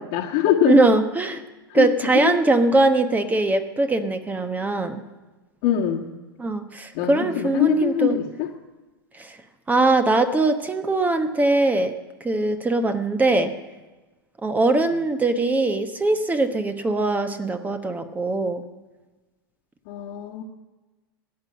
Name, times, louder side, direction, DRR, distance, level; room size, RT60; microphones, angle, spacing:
voice 1, 0.0-0.8 1.7-1.9 2.1-2.3 5.6-6.1 6.9-8.5 19.8-20.4, left 10 dB, 55° left, -3 dB, 1.5 m, -23 dB
voice 2, 0.6-1.4 1.7-5.0 6.4-8.2 9.1-9.4 9.7-13.5 14.4-18.6, right 2 dB, 15° right, 8 dB, 1.1 m, -21 dB
15.0 x 9.3 x 8.6 m, 1.2 s
hypercardioid pair, 100°, 12 cm